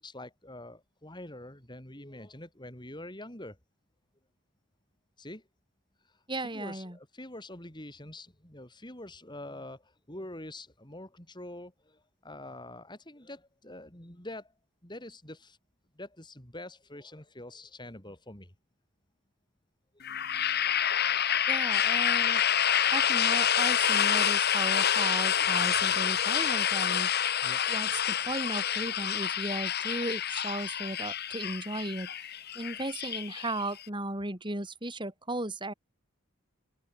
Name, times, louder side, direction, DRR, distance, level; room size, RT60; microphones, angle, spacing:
voice 1, 0.0-3.6 5.2-5.4 6.0-14.5 14.8-15.6 15.9-18.5 20.3-20.8 27.4-27.6 28.1-28.3, left 1 dB, 20° left, 6.0 m, -45 dB
voice 2, 6.3-7.0 21.5-22.4 22.9-32.1 32.5-35.7, right 2 dB, 20° right, 7.9 m, -36 dB
sound 1, 20.0-33.8, left 9 dB, 50° left, 2.6 m, -27 dB
open air
head